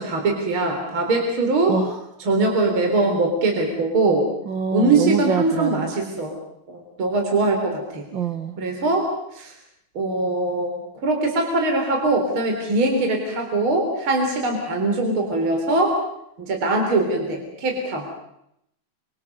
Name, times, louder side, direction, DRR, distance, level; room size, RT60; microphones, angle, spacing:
voice 1, 0.0-1.7 2.2-4.2 4.7-6.4 6.7-8.0 8.6-9.5 9.9-15.9 16.4-18.0, right 2 dB, 35° right, 3 dB, 4.5 m, -22 dB
voice 2, 1.7-2.0 4.4-5.9 8.1-8.5, right 6 dB, 85° right, 8 dB, 1.0 m, -25 dB
30.0 x 26.5 x 6.8 m, 0.78 s
omnidirectional pair, 4.2 m